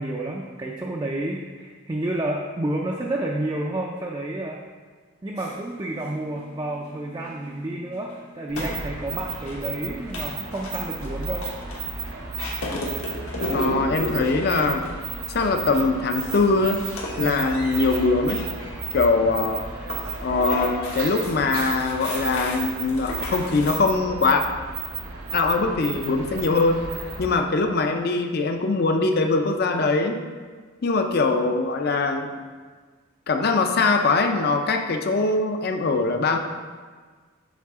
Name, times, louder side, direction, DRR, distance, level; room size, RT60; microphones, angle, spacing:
voice 1, 0.0-4.6 5.2-11.5 17.2-17.4, right 1 dB, 20° right, -1 dB, 0.3 m, -30 dB
sound 1, 5.4-23.8, left 1 dB, 80° left, 1.2 m, -36 dB
sound 2, 8.5-27.4, right 4 dB, 90° right, 0.9 m, -34 dB
voice 2, 13.5-14.8 15.3-16.8 17.2-18.5 18.9-19.6 20.2-24.4 25.3-26.8 27.2-30.2 30.8-32.3 33.3-36.4, left 3 dB, 45° left, 5 dB, 0.4 m, -22 dB
7.3 x 4.1 x 3.5 m, 1.5 s
head